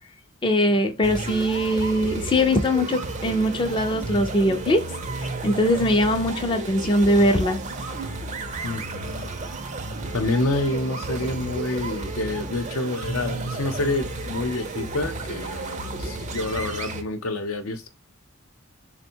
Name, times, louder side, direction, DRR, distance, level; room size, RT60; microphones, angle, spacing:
voice 1, 0.4-4.9 5.2-7.6, equal, 25° left, 0.4 m, -21 dB
sound 1, 1.0-17.0, right 3 dB, 35° right, 0.5 m, -32 dB
voice 2, 8.6-9.1 10.1-17.9, left 2 dB, 75° left, 0.7 m, -28 dB
3.5 x 2.2 x 4.3 m
head